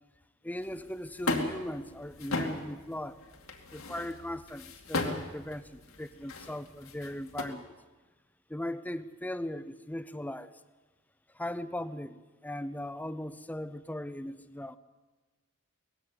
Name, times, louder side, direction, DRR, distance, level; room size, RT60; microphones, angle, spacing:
voice 1, 0.4-3.2 3.7-7.7 8.5-10.5 11.3-14.8, left 1 dB, 10° left, 13 dB, 0.7 m, -38 dB
sound 1, 0.6-7.4, left 2 dB, 80° left, 2.4 m, -37 dB
19.0 x 15.5 x 9.8 m, 1.2 s
head